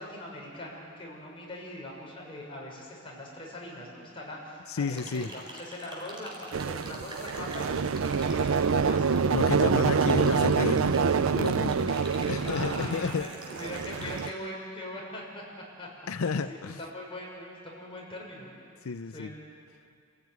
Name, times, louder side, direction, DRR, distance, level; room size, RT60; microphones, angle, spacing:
voice 1, 0.0-9.4 9.7-9.9 11.8-12.0 12.4-15.4 15.8-15.9 16.2-18.5 19.1-19.3, left 1 dB, 25° left, -3 dB, 6.3 m, -41 dB
voice 2, 4.7-5.3 9.3-11.9 12.3-13.3 14.0-14.2 16.1-16.8 18.8-19.3, left 5 dB, 85° left, 11 dB, 0.6 m, -32 dB
sound 1, 4.9-14.3, right 1 dB, 25° right, 4.3 m, -46 dB
sound 2, 6.5-14.3, right 5 dB, 75° right, 0.5 m, -26 dB
28.0 x 15.5 x 9.4 m, 2.4 s
head